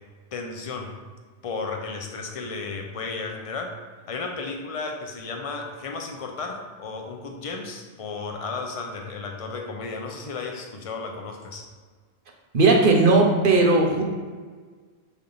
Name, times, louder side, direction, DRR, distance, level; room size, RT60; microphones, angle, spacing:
voice 1, 0.3-0.9 1.4-3.8 4.1-11.7, left 4 dB, 40° left, 3 dB, 0.6 m, -33 dB
voice 2, 12.5-14.0, right 3 dB, 50° right, 2 dB, 0.9 m, -17 dB
6.8 x 3.5 x 3.9 m, 1.5 s
omnidirectional pair, 1.2 m